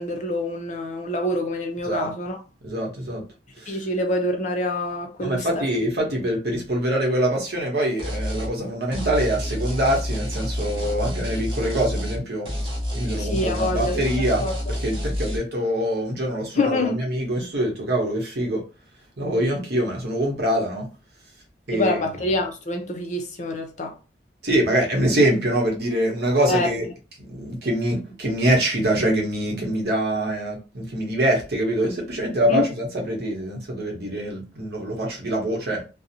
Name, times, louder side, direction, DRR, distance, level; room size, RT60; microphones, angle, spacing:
voice 1, 0.0-2.4 3.7-5.6 13.2-14.5 16.5-17.0 21.7-23.9 26.5-26.7 32.4-32.6, left 1 dB, 40° left, 0.5 m, -26 dB
voice 2, 2.6-3.2 3.6-3.8 5.2-12.5 12.9-14.4 14.8-18.6 19.2-20.9 21.7-22.0 24.4-26.9 27.2-35.8, right 1 dB, 60° right, 0.9 m, -24 dB
sound 1, 8.0-8.5 8.9-12.2 12.5-15.4, equal, 25° right, 0.8 m, -28 dB
2.6 x 2.0 x 2.7 m
head